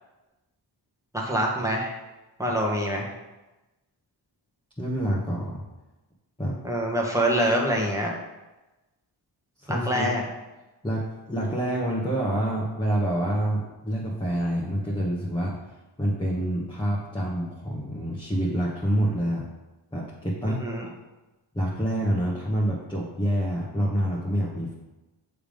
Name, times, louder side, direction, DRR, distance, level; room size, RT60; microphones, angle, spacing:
voice 1, 1.1-1.9 2.4-3.1 6.6-8.1 9.7-10.2 20.5-20.9, equal, 5° right, -2 dB, 1.5 m, -25 dB
voice 2, 4.8-5.6 6.4-6.5 9.6-10.1 10.8-15.5 16.0-19.5 19.9-20.9 21.5-24.7, equal, 10° left, -5 dB, 1.3 m, -27 dB
7.1 x 3.5 x 5.2 m, 1.1 s
wide cardioid pair, 80°, 46 cm